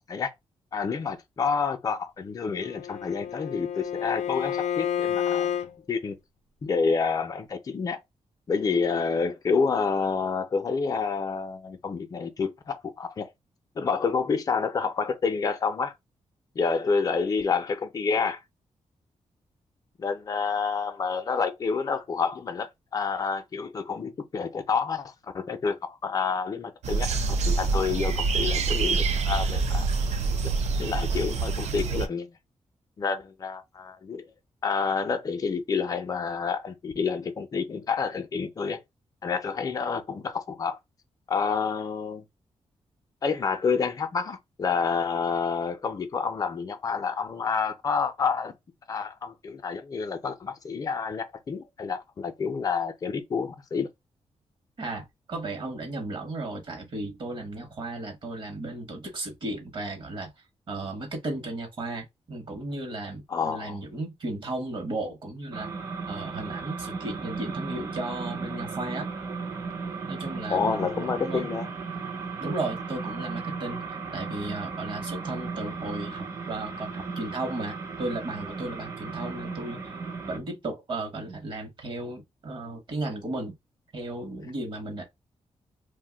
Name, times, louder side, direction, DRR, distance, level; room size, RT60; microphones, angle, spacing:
voice 1, 0.7-5.5 5.9-6.2 6.6-8.0 8.5-13.3 13.8-15.9 16.6-18.4 20.0-29.9 30.8-32.4 33.0-34.3 34.6-38.8 39.2-40.8 41.3-42.2 43.2-48.5 48.9-53.9 63.3-63.8 70.5-71.7, left 5 dB, 35° left, 0.5 m, -28 dB
Bowed string instrument, 2.5-5.7, left 9 dB, 85° left, 0.4 m, -30 dB
sound 1, 26.8-32.1, right 4 dB, 75° right, 0.5 m, -26 dB
voice 2, 54.8-60.3 60.7-65.7 66.1-69.1 70.1-71.5 72.4-79.9 80.3-83.5 83.9-85.0, right 2 dB, 45° right, 0.9 m, -35 dB
sound 2, 65.5-80.4, right 4 dB, 25° right, 0.6 m, -35 dB
2.6 x 2.1 x 3.7 m
wide cardioid pair, 165°, 11 cm